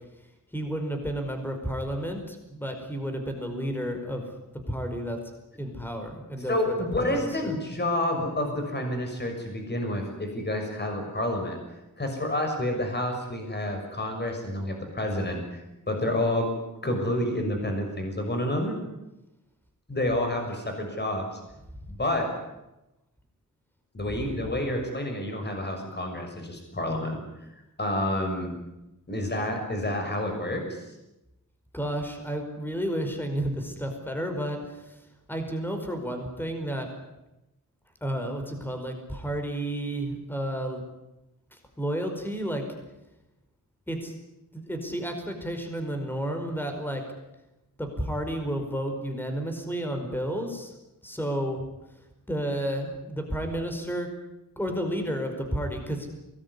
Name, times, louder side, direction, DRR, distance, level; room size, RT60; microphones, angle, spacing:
voice 1, 0.5-4.3 4.7-7.5 24.0-24.5 31.7-35.0 35.3-36.9 38.0-40.8 41.5-42.6 43.9-44.1 44.5-47.0 47.8-50.7 51.0-51.6 52.3-54.1 54.6-56.1, equal, 5° left, 5 dB, 5.1 m, -31 dB
voice 2, 6.4-11.6 12.0-15.6 15.9-16.5 16.8-18.8 19.9-21.4 21.9-22.3 23.9-27.2 27.8-28.5 29.1-30.9, left 1 dB, 30° left, 3 dB, 6.4 m, -29 dB
23.5 x 20.0 x 9.8 m, 0.95 s
wide cardioid pair, 100°, 33 cm